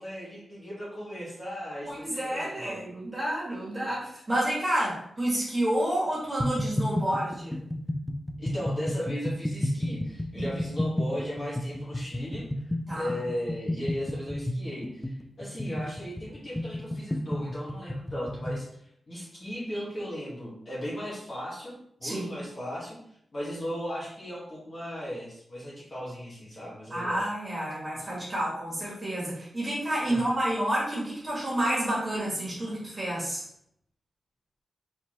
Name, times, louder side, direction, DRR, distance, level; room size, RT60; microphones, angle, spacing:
voice 1, 0.0-2.8 8.4-12.5 12.9-18.7 19.1-23.0 23.3-27.3 30.1-30.3, equal, 35° left, -6 dB, 1.8 m, -36 dB
voice 2, 1.8-7.6 10.3-10.5 12.9-13.1 22.0-22.4 26.9-33.4, right 1 dB, 20° right, -6 dB, 1.8 m, -29 dB
sound 1, 6.4-18.7, left 1 dB, 10° left, 0.3 m, -32 dB
4.5 x 3.6 x 3.0 m, 0.71 s
wide cardioid pair, 145°, 0 cm